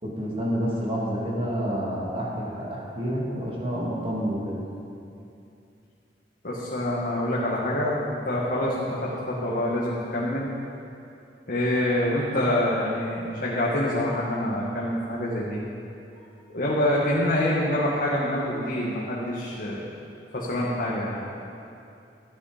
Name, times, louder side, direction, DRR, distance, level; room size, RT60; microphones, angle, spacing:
voice 1, 0.0-4.6, equal, 35° right, -5 dB, 2.6 m, -29 dB
voice 2, 6.4-10.5 11.5-15.6 16.5-19.8 20.3-21.2, left 1 dB, 55° left, -7 dB, 1.9 m, -26 dB
13.5 x 10.0 x 5.2 m, 2.7 s
head